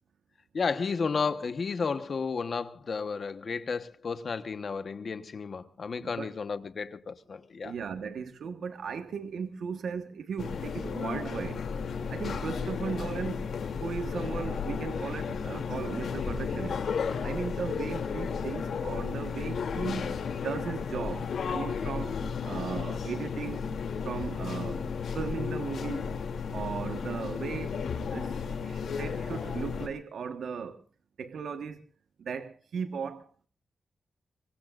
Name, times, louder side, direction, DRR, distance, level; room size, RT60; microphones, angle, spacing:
voice 1, 0.5-7.7, left 5 dB, 45° left, 1.2 m, -32 dB
voice 2, 6.0-6.3 7.6-11.7 12.1-13.5 13.8-16.8 17.2-20.1 20.3-23.7 24.0-26.2 26.5-27.8 28.1-30.8 31.2-31.8 32.2-33.3, right 6 dB, 75° right, 1.4 m, -37 dB
sound 1, 10.4-29.9, left 6 dB, 80° left, 2.8 m, -33 dB
24.0 x 23.5 x 2.5 m
wide cardioid pair, 165°, 0 cm